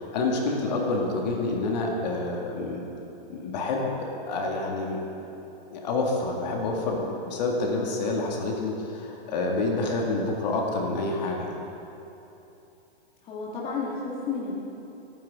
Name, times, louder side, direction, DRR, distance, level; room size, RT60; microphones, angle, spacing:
voice 1, 0.0-2.9 3.3-5.0 5.7-11.5, left 2 dB, 45° left, 0 dB, 2.0 m, -28 dB
voice 2, 13.2-14.5, left 4 dB, 20° left, -5 dB, 1.8 m, -31 dB
26.0 x 9.7 x 3.6 m, 3.0 s
hypercardioid pair, 165°, 31 cm